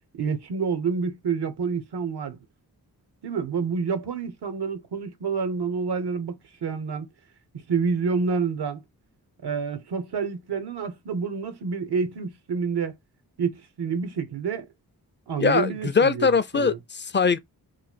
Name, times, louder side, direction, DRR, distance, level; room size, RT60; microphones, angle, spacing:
voice 1, 0.2-2.4 3.2-7.1 7.7-8.8 9.4-12.9 13.4-14.7 15.3-16.8, right 5 dB, 85° right, 0.8 m, -28 dB
voice 2, 15.4-17.4, left 5 dB, 30° left, 0.4 m, -22 dB
3.1 x 2.2 x 4.1 m
cardioid pair, 60°, 39 cm